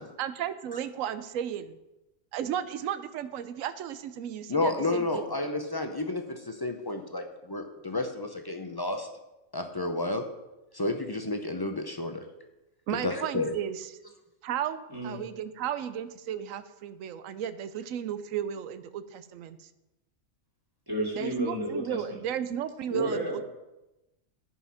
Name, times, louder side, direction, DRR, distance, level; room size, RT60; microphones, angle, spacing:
voice 1, 0.2-1.8 2.3-5.3 12.9-13.9 14.4-19.7 21.2-23.4, right 9 dB, 75° right, 13 dB, 1.0 m, -34 dB
voice 2, 4.5-9.1 9.5-10.2 10.7-12.2 13.0-13.5, left 2 dB, 30° left, 5 dB, 0.4 m, -31 dB
voice 3, 20.9-22.0 22.9-23.4, equal, 15° right, -4 dB, 2.6 m, -31 dB
9.8 x 5.6 x 5.6 m, 0.98 s
omnidirectional pair, 1.4 m